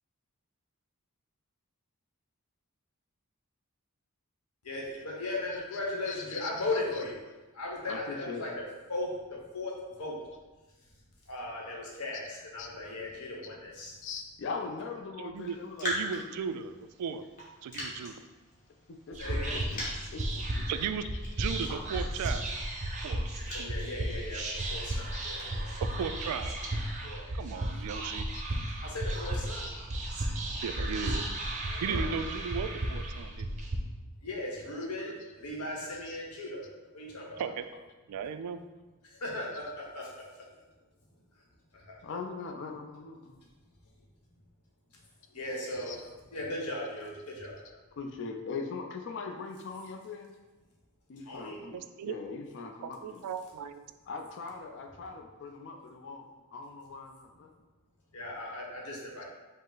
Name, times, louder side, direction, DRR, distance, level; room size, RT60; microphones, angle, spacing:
voice 1, 4.6-7.2 7.5-8.5 8.9-9.7 10.0-10.2 11.3-13.9 19.2-19.6 23.5-25.7 27.0-27.3 28.8-29.6 31.7-32.1 34.2-36.6 36.9-37.4 39.1-40.1 41.7-42.0 45.3-45.9 46.3-47.6 51.3-51.6 58.1-59.2, left 2 dB, 80° left, -2 dB, 1.0 m, -37 dB
voice 2, 5.4-7.4 7.9-8.5 10.3-10.4 11.6-13.4 14.0-16.4 18.9-19.8 20.1-21.2 21.7-21.9 22.2-22.7 24.0-24.7 25.1-25.3 26.3-26.8 28.3-28.5 29.1-29.9 31.9-32.2 34.6-35.4 35.7-36.8 37.4-37.8 38.5-38.8 39.5-39.6 42.0-43.4 45.7-46.2 46.6-47.4 47.6-50.4 51.1-53.3 54.1-56.3 56.5-57.5 58.4-58.6, left 4 dB, 55° left, 4 dB, 0.4 m, -43 dB
voice 3, 15.2-15.6 15.8-17.2 17.6-18.2 20.7-21.1 21.4-22.5 23.0-23.3 23.6-23.7 25.8-26.6 27.3-28.3 30.6-31.3 31.8-33.5 37.4-37.7 38.1-38.6 51.7-52.1 52.8-53.9, right 6 dB, 85° right, 11 dB, 0.3 m, -36 dB
Raindrop, 15.4-26.0, left 1 dB, 35° left, 1.2 m, -43 dB
Whispering, 19.1-33.8, right 1 dB, 30° right, 0.6 m, -34 dB
5.2 x 2.0 x 3.8 m, 1.2 s
head